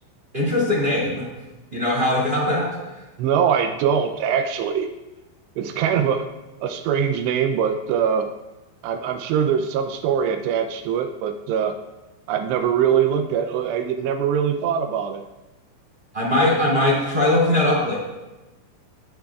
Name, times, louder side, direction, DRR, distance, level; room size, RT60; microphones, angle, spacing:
voice 1, 0.3-1.2 1.7-2.7 16.1-18.0, left 1 dB, 30° right, -4 dB, 1.0 m, -20 dB
voice 2, 3.2-4.9 5.6-6.3 6.6-8.3 8.8-11.7 12.3-15.2, right 8 dB, 85° right, 5 dB, 2.4 m, -22 dB
16.0 x 9.7 x 2.4 m, 1.1 s
omnidirectional pair, 5.6 m